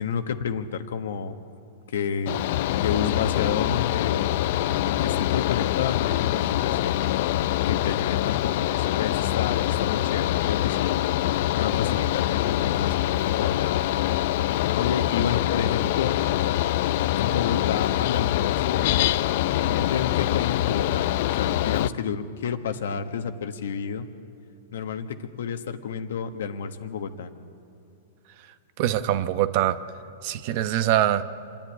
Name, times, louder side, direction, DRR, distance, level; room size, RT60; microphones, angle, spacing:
voice 1, 0.0-1.3 1.9-2.4 2.8-4.3 4.8-7.0 7.6-11.0 11.5-13.7 14.8-16.2 17.1-19.0 19.6-24.1 24.7-27.3, left 7 dB, 75° left, 8 dB, 1.3 m, -30 dB
Mechanical fan, 2.3-21.9, left 14 dB, 55° left, 0.4 m, -24 dB
voice 2, 28.8-29.8 30.2-31.2, right 12 dB, 50° right, 12 dB, 0.9 m, -23 dB
26.0 x 10.5 x 9.7 m, 2.7 s
hypercardioid pair, 135°, 0 cm